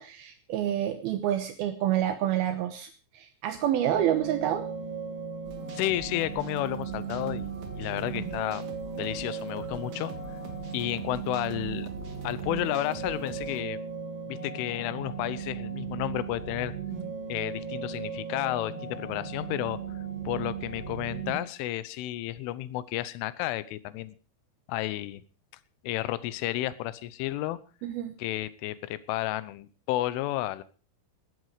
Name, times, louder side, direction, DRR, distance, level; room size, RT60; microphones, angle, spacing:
voice 1, 0.0-2.9 3.1-4.6 27.8-28.1, right 11 dB, 75° right, 8 dB, 2.3 m, -28 dB
sound 1, 3.9-21.4, right 6 dB, 15° right, 6.5 m, -37 dB
sound 2, 5.4-13.6, right 5 dB, 55° right, 2.2 m, -45 dB
voice 2, 5.8-8.7 8.9-10.1 10.7-11.9 12.2-13.8 14.3-16.7 17.3-19.8 20.2-24.2 24.7-25.2 25.8-27.6 28.2-30.6, left 15 dB, 80° left, 16 dB, 3.3 m, -32 dB
18.0 x 12.5 x 4.9 m, 0.37 s
omnidirectional pair, 5.7 m